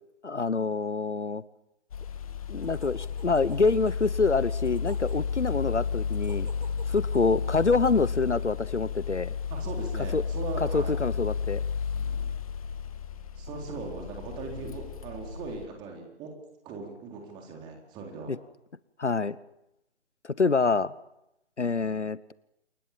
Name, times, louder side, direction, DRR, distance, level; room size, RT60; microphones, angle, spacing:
voice 1, 0.2-1.4 2.5-6.5 6.9-9.3 10.1-10.2 10.6-11.6 18.3-18.4 19.0-19.4 20.2-20.9 21.6-22.3, left 4 dB, 80° left, 19 dB, 1.1 m, -26 dB
sound 1, 1.9-15.7, left 6 dB, 30° left, 1.7 m, -32 dB
sound 2, 2.1-8.2, right 4 dB, 45° right, 3.9 m, -53 dB
voice 2, 9.5-10.9 11.9-12.4 13.4-16.3 16.6-18.3, right 4 dB, 15° right, 2 dB, 3.9 m, -40 dB
28.0 x 21.5 x 7.4 m, 0.85 s
figure-of-eight pair, 145°, 34 cm